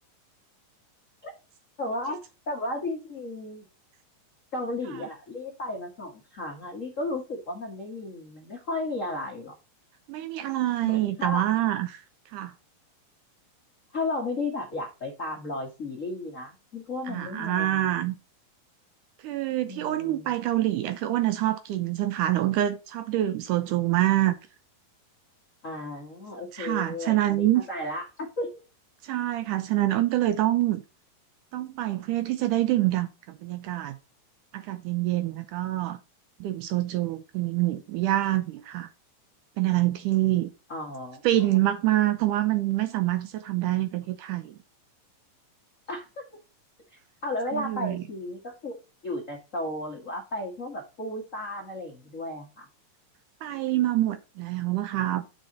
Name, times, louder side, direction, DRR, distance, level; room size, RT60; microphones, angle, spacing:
voice 1, 1.8-2.2 2.5-3.6 4.5-9.5 10.8-11.5 13.9-17.9 19.6-20.3 25.6-28.5 40.7-41.2 45.9-46.2 47.2-52.7, left 2 dB, 60° left, 0.8 m, -34 dB
voice 2, 10.1-12.0 12.3-12.5 17.1-18.2 19.2-24.3 26.5-27.6 29.0-30.8 31.5-34.0 34.5-36.0 36.4-38.9 39.6-40.5 41.2-44.6 47.5-48.0 53.4-55.3, right 14 dB, 80° right, 1.9 m, -26 dB
9.1 x 5.3 x 4.0 m
omnidirectional pair, 4.1 m